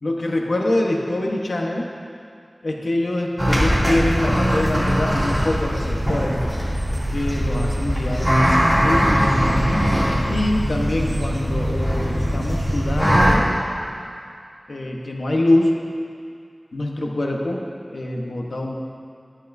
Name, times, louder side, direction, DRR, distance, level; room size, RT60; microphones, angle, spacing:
voice 1, 0.0-1.9 2.6-6.4 7.1-9.1 10.3-13.5 14.7-15.7 16.7-17.6 17.9-18.7, left 1 dB, 85° left, 0 dB, 1.1 m, -24 dB
sound 1, 3.4-13.3, equal, ahead, 2.6 m, -20 dB
14.0 x 11.0 x 2.7 m, 2.4 s
wide cardioid pair, 60°, 0 cm